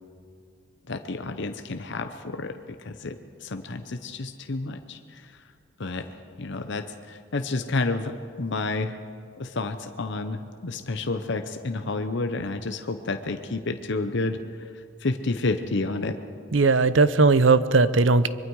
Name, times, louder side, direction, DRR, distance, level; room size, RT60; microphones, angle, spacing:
voice 1, 0.9-5.4 5.8-6.1 6.4-9.0 9.4-16.2, left 3 dB, 60° left, 7 dB, 0.9 m, -30 dB
voice 2, 16.5-18.3, right 3 dB, 65° right, 14 dB, 0.7 m, -18 dB
24.5 x 22.0 x 4.8 m, 2.3 s
head